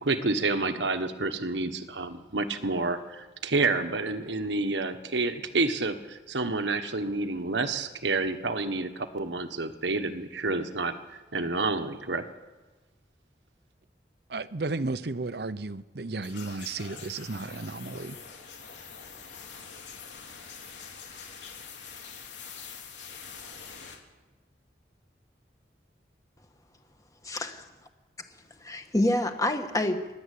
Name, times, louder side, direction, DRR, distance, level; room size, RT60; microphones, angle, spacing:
voice 1, 0.0-12.2, right 3 dB, 85° right, 1.4 m, -29 dB
voice 2, 14.3-18.2, right 3 dB, 60° right, 0.8 m, -33 dB
sound 1, 16.2-24.0, left 6 dB, 85° left, 3.3 m, -44 dB
voice 3, 27.2-27.6 28.6-30.1, left 1 dB, 20° left, 1.6 m, -27 dB
29.0 x 12.0 x 8.5 m
head